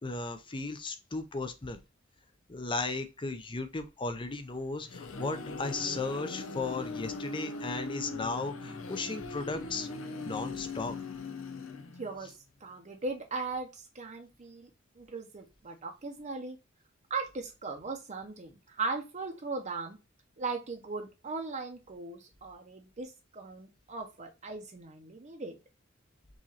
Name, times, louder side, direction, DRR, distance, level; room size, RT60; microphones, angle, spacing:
voice 1, 0.0-1.8 2.5-9.9 10.3-11.0, left 3 dB, 25° left, 0.6 m, -35 dB
sound 1, 4.6-12.3, left 3 dB, 80° left, 0.7 m, -40 dB
voice 2, 12.0-12.3 12.6-14.7 15.0-16.6 17.1-20.0 20.4-25.6, right 3 dB, 35° right, 0.7 m, -38 dB
4.7 x 3.1 x 2.8 m
head